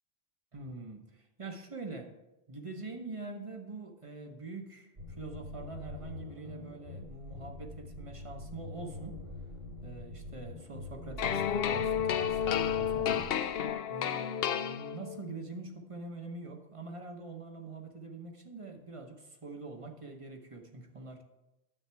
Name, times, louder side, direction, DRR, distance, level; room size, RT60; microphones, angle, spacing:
voice 1, 0.5-2.1 2.5-9.1 9.8-13.3 13.9-21.2, right 3 dB, 30° right, 4 dB, 1.0 m, -44 dB
sound 1, 5.0-13.8, left 2 dB, 50° right, 2.0 m, -44 dB
sound 2, 11.2-15.3, left 9 dB, 65° left, 0.8 m, -31 dB
10.0 x 7.2 x 4.6 m, 0.97 s
omnidirectional pair, 1.1 m